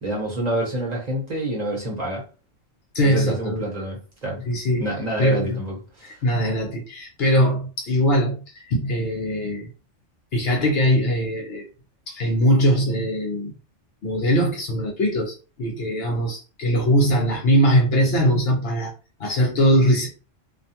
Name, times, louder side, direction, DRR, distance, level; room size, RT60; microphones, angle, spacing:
voice 1, 0.0-2.2 3.0-4.4 4.8-6.2, right 1 dB, 35° right, 0.9 m, -27 dB
voice 2, 2.9-3.7 4.5-4.9 5.2-5.5 6.0-9.7 10.3-11.6 12.1-13.5 14.0-18.9 19.2-20.1, equal, 60° left, 0.8 m, -21 dB
2.4 x 2.2 x 2.7 m
omnidirectional pair, 1.3 m